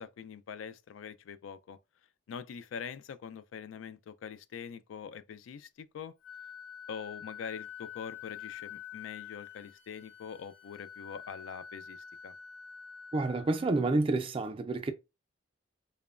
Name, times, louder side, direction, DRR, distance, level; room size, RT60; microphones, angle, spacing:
voice 1, 0.0-1.8 2.3-6.1 6.9-12.3, left 7 dB, 85° left, 0.3 m, -44 dB
Wind instrument woodwind instrument, 6.2-14.0, left 8 dB, 45° left, 0.6 m, -47 dB
voice 2, 13.1-14.9, right 2 dB, 30° right, 0.3 m, -29 dB
2.9 x 2.1 x 2.3 m
head